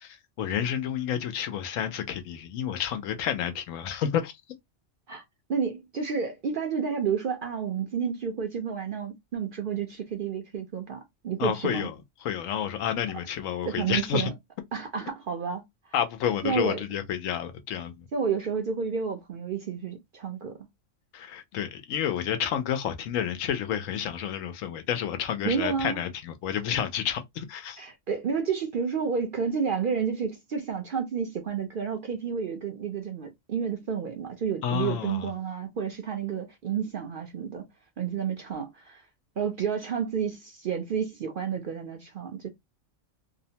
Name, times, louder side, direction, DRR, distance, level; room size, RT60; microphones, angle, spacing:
voice 1, 0.0-4.3 11.4-12.0 12.2-14.3 15.9-18.1 21.1-27.8 34.6-35.3, left 9 dB, 85° left, 1.0 m, -30 dB
voice 2, 5.5-11.9 13.7-14.3 14.7-15.6 16.4-16.8 18.1-20.6 25.4-26.0 27.8-37.6 38.0-39.0 39.4-42.5, right 6 dB, 60° right, 0.5 m, -30 dB
2.7 x 2.1 x 2.7 m
omnidirectional pair, 1.3 m